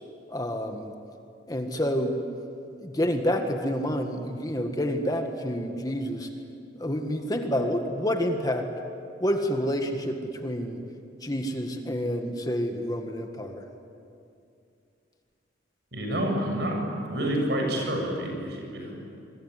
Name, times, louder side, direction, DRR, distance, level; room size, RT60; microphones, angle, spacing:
voice 1, 0.3-0.9 1.5-2.1 2.8-6.3 6.8-8.7 9.2-10.8 11.2-13.6, equal, 20° left, 5 dB, 1.7 m, -28 dB
voice 2, 15.9-16.8 17.1-19.0, right 1 dB, 65° right, 1 dB, 7.6 m, -28 dB
27.0 x 22.5 x 9.8 m, 2.5 s
head